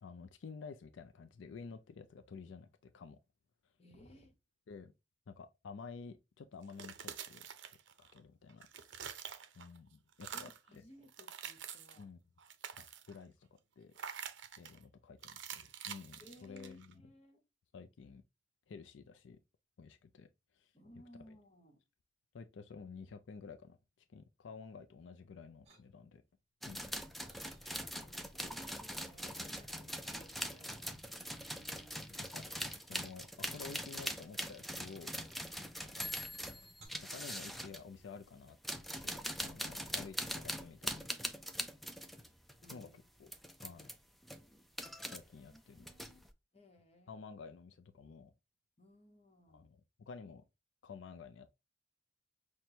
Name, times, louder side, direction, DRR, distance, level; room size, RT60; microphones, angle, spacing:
voice 1, 0.0-3.2 4.7-4.9 5.3-7.5 8.0-8.7 8.9-9.1 9.5-10.5 12.0-12.2 12.8-13.5 13.8-16.9 17.7-18.2 18.7-19.4 19.8-20.3 20.5-20.7 22.3-23.8 24.1-26.2 26.7-26.8 29.8-29.9 32.1-35.5 36.0-36.1 36.3-36.6 37.1-38.6 39.0-41.1 42.7-42.9 43.2-43.3 43.6-43.9 45.1-45.9 47.1-48.3 49.5-49.8 50.1-50.4 50.8-51.5, left 5 dB, 80° left, 0.4 m, -51 dB
voice 2, 3.8-4.4 10.3-12.1 16.2-17.4 20.7-21.8 27.1-27.4 27.7-32.0 35.4-36.1 42.6-43.0 45.0-46.3 46.5-47.3 48.8-49.7, left 1 dB, 35° left, 1.0 m, -61 dB
sound 1, 6.6-8.2 8.5-9.8 10.1-10.7 11.1-12.0 12.4-13.2 14.0-14.8 15.2-16.9, right 8 dB, 75° right, 0.6 m, -47 dB
sound 2, 25.6-26.3 26.8-28.1 28.5-29.3 29.9-30.7 31.5-35.7 36.0-36.9, right 2 dB, 35° right, 1.4 m, -65 dB
sound 3, 26.6-37.8 38.5-42.9 43.3-44.0 44.2-45.2 45.6-46.3, equal, ahead, 0.4 m, -42 dB
5.9 x 2.2 x 2.7 m
head